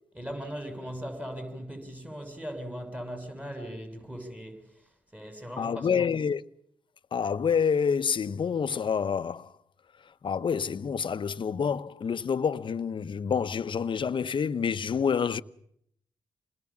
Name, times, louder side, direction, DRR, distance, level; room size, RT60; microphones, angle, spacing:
voice 1, 0.1-4.6 5.1-6.1, equal, 15° right, 6.5 m, -39 dB
voice 2, 5.6-6.4 7.1-9.5 10.2-15.4, left 6 dB, 55° left, 1.0 m, -28 dB
27.5 x 20.5 x 7.3 m
supercardioid pair, 45°, 10 cm